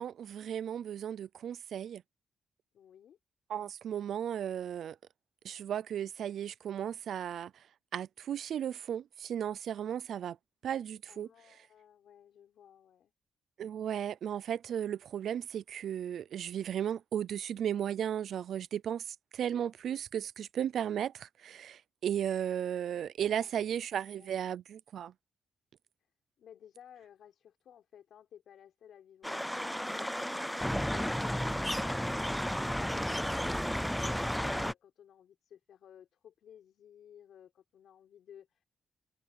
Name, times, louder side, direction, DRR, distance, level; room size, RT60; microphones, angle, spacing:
voice 1, 0.0-2.0 3.5-5.0 5.4-7.6 7.9-10.4 10.6-11.3 13.6-25.1, right 9 dB, 70° right, 0.5 m, -35 dB
voice 2, 2.7-3.2 11.1-13.1 23.3-24.4 26.4-38.7, left 9 dB, 70° left, 5.3 m, -56 dB
sound 1, 29.2-34.7, equal, ahead, 0.4 m, -33 dB
cardioid pair, 130°, 0 cm